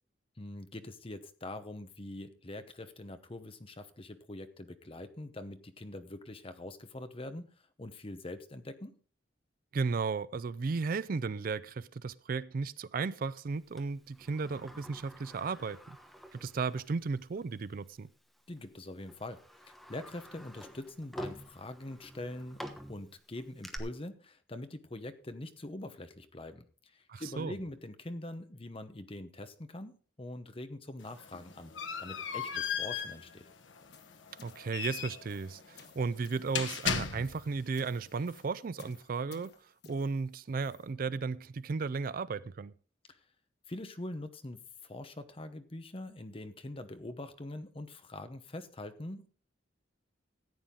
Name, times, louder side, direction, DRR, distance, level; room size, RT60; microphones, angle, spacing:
voice 1, 0.4-7.5 7.8-9.0 18.5-19.4 19.9-22.6 22.9-26.7 26.9-31.7 32.0-33.4 43.1-43.2 43.7-49.3, left 1 dB, 30° left, 0.9 m, -43 dB
voice 2, 9.7-16.0 16.3-18.1 27.1-27.5 34.4-39.5 39.9-42.7, right 4 dB, 50° right, 0.4 m, -35 dB
Sliding door, 13.8-17.0 17.4-17.5 18.4-18.6 19.1-23.8, equal, ahead, 1.1 m, -48 dB
sound 1, 31.0-37.6, left 7 dB, 85° left, 1.1 m, -37 dB
sound 2, 33.7-40.9, left 4 dB, 60° left, 1.4 m, -58 dB
14.0 x 9.0 x 3.8 m
head